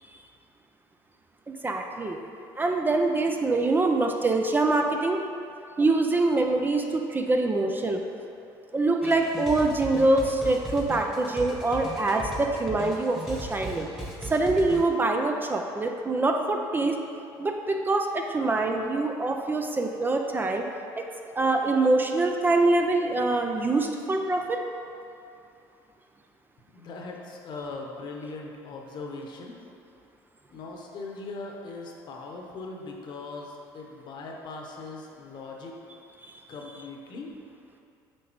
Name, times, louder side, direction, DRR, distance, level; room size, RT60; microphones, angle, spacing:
voice 1, 1.5-2.2 2.6-5.2 5.8-8.0 8.7-13.9 14.2-17.0 17.4-20.6 21.0-21.1 21.4-24.6, right 2 dB, 20° right, 3 dB, 0.5 m, -24 dB
sound 1, 9.0-14.8, right 1 dB, 5° right, 1.3 m, -37 dB
voice 2, 26.7-29.5 30.5-35.7 36.5-37.3, left 3 dB, 55° left, 1 dB, 1.0 m, -40 dB
7.9 x 5.0 x 3.1 m, 2.6 s
supercardioid pair, 90°, 9 cm